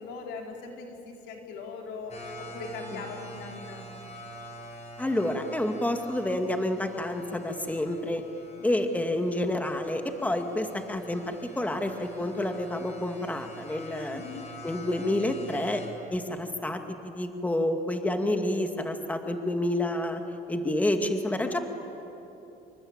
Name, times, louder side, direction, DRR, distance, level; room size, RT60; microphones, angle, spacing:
voice 1, 0.0-4.0 14.1-14.5 21.4-21.6, left 4 dB, 90° left, 2 dB, 4.1 m, -40 dB
sound 1, 2.1-15.9, equal, 40° left, 5.4 m, -46 dB
voice 2, 5.0-8.2 8.6-14.2 14.6-15.8 16.1-20.2 20.5-21.6, left 1 dB, 10° left, 5 dB, 2.1 m, -29 dB
27.5 x 23.5 x 8.9 m, 3.0 s
cardioid pair, 110°, 17 cm